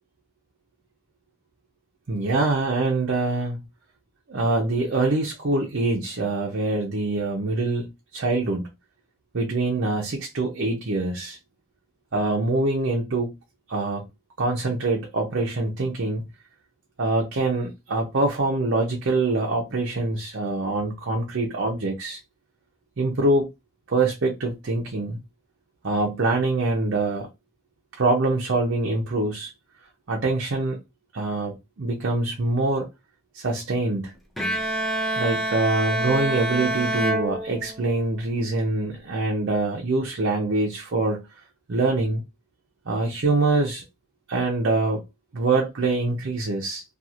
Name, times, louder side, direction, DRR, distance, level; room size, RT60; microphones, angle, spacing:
voice 1, 2.1-3.6 4.3-8.7 9.3-11.4 12.1-13.3 13.7-14.1 14.4-16.3 17.0-22.2 23.0-23.5 23.9-25.2 25.8-27.3 27.9-29.5 30.1-30.8 31.1-32.9 33.3-34.1 35.2-41.3 41.7-42.2 42.9-43.8 44.3-45.0 45.3-46.8, right 2 dB, 55° right, 0.6 m, -24 dB
Bowed string instrument, 34.4-38.1, right 1 dB, ahead, 0.4 m, -27 dB
2.8 x 2.3 x 2.4 m
head